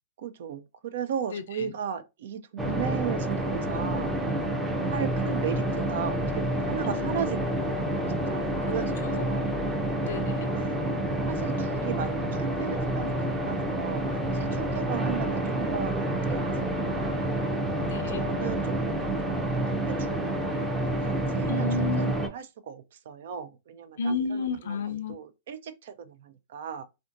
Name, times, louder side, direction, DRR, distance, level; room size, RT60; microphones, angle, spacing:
voice 1, 0.2-4.3 4.9-9.6 10.5-10.8 11.3-17.2 18.2-21.7 22.0-24.0 24.3-24.5 24.9-26.8, right 8 dB, 65° right, 0.4 m, -36 dB
voice 2, 1.3-1.7 6.8-7.5 8.6-9.2 10.1-10.5 17.8-18.2 21.5-22.1 24.0-25.1, left 4 dB, 70° left, 0.5 m, -33 dB
sound 1, 2.6-22.3, right 1 dB, 15° right, 0.6 m, -28 dB
3.4 x 2.5 x 2.4 m
hypercardioid pair, 110°, 0 cm